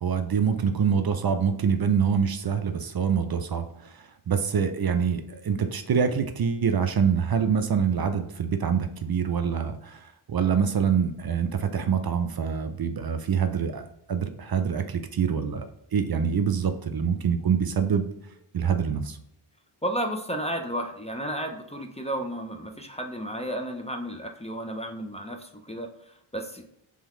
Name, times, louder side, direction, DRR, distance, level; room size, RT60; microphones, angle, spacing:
voice 1, 0.0-3.6 3.9-15.7 15.9-18.1 18.5-19.2, right 7 dB, 50° right, 8 dB, 0.5 m, -25 dB
voice 2, 19.8-25.9 26.3-26.7, right 1 dB, 15° left, 4 dB, 0.5 m, -32 dB
3.8 x 3.4 x 3.1 m, 0.77 s
wide cardioid pair, 70°, 49 cm